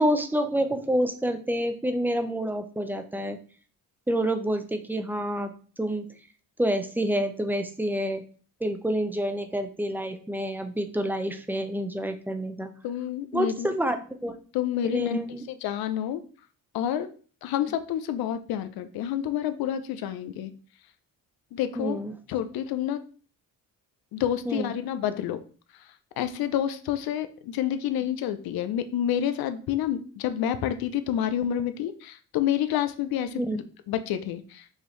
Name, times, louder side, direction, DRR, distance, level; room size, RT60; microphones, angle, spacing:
voice 1, 0.0-3.4 4.1-5.5 5.8-6.1 6.6-8.2 8.6-12.7 13.3-14.4 14.8-15.4 21.8-22.1 24.5-24.7 33.4-33.6, equal, 5° right, 7 dB, 0.5 m, -28 dB
voice 2, 12.8-13.7 14.5-15.2 15.5-16.2 16.7-17.1 17.4-20.5 21.5-22.0 22.3-23.0 24.1-25.4 26.2-34.6, left 10 dB, 85° left, 10 dB, 0.5 m, -28 dB
4.9 x 2.7 x 3.1 m, 0.40 s
cardioid pair, 90°, 36 cm